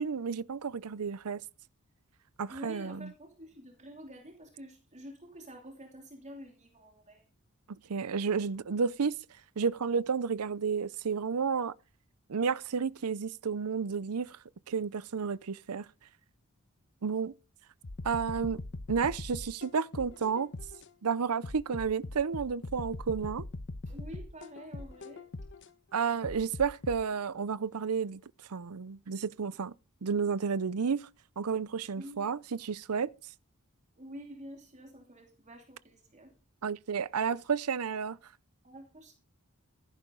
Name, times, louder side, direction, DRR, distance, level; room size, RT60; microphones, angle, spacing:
voice 1, 0.0-1.4 2.4-3.1 7.9-9.2 9.6-11.7 12.3-14.4 14.7-15.9 17.0-17.3 18.0-18.6 18.9-20.5 21.0-23.5 25.9-28.2 28.5-29.7 30.0-31.1 31.4-33.1 36.6-38.2, right 6 dB, 80° right, 0.6 m, -31 dB
voice 2, 2.5-7.3 23.8-25.3 32.0-32.3 34.0-36.3 38.6-39.1, equal, 35° right, 2.9 m, -48 dB
sound 1, 17.8-20.9 21.4-25.7 26.2-27.0, left 2 dB, 55° left, 1.1 m, -41 dB
15.0 x 11.5 x 3.9 m
head